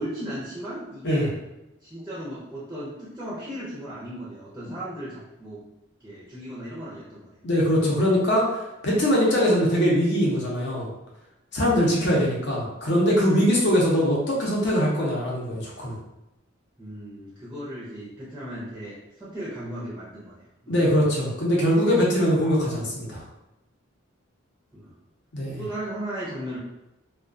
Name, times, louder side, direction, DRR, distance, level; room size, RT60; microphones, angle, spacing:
voice 1, 0.0-1.3 1.8-5.6 6.0-7.4 11.9-12.0 16.8-20.4 20.6-21.1 24.7-25.0 25.5-26.6, right 1 dB, 10° right, -8 dB, 0.5 m, -36 dB
voice 2, 7.4-8.6 8.8-10.9 11.5-15.9 20.7-23.2 25.3-25.6, equal, 55° left, -4 dB, 0.7 m, -22 dB
2.2 x 2.2 x 2.5 m, 0.94 s
head